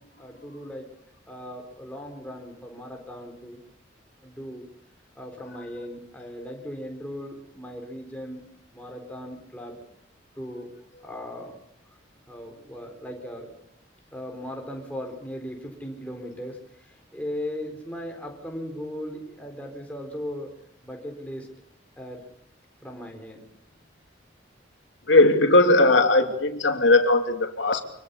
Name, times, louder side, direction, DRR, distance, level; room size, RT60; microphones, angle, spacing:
voice 1, 0.2-0.9 1.3-3.6 4.2-4.7 5.2-8.4 8.7-9.8 10.4-10.7 11.0-11.5 12.3-13.5 14.1-16.6 17.1-20.5 20.8-21.5 22.0-22.2 22.8-23.4, equal, 10° left, 2 dB, 4.2 m, -37 dB
voice 2, 25.1-27.8, left 2 dB, 80° left, 6 dB, 2.8 m, -18 dB
24.0 x 23.0 x 7.0 m, 0.72 s
head